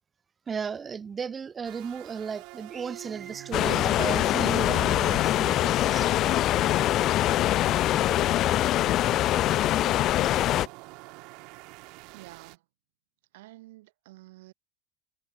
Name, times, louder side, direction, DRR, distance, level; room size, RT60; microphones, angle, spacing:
voice 1, 0.5-6.1, right 6 dB, 15° right, 2.5 m, -35 dB
sound 1, 1.6-12.6, right 26 dB, 45° right, 2.8 m, -46 dB
sound 2, 3.5-10.7, left 14 dB, 30° left, 0.7 m, -23 dB
voice 2, 12.1-12.6 13.3-14.5, right 19 dB, 85° right, 2.7 m, -49 dB
cardioid pair, 180°, 0 cm